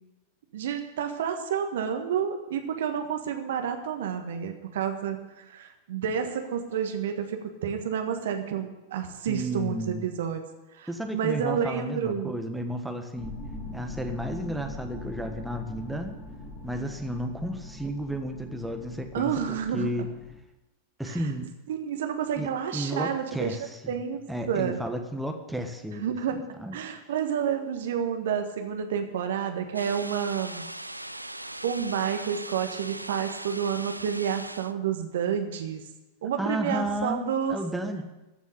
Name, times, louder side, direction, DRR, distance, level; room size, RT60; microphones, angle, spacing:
voice 1, 0.5-10.4 10.8-12.3 19.1-19.9 21.1-21.2 21.7-23.6 23.9-24.2 24.5-24.8 26.0-26.4 26.7-30.6 31.6-35.8 36.2-37.6, right 8 dB, 60° right, 5 dB, 1.5 m, -30 dB
voice 2, 9.3-10.1 10.9-13.3 13.7-16.1 16.6-19.3 19.7-20.1 21.0-21.5 22.4-23.9 24.3-26.1 26.6-26.8 36.4-38.0, right 1 dB, 5° right, 4 dB, 1.3 m, -32 dB
sound 1, 13.2-20.4, left 2 dB, 30° left, 4.0 m, -41 dB
sound 2, 29.7-34.7, right 1 dB, 85° right, 0.4 m, -39 dB
14.5 x 6.2 x 9.8 m, 1.0 s
figure-of-eight pair, 90°, 0 cm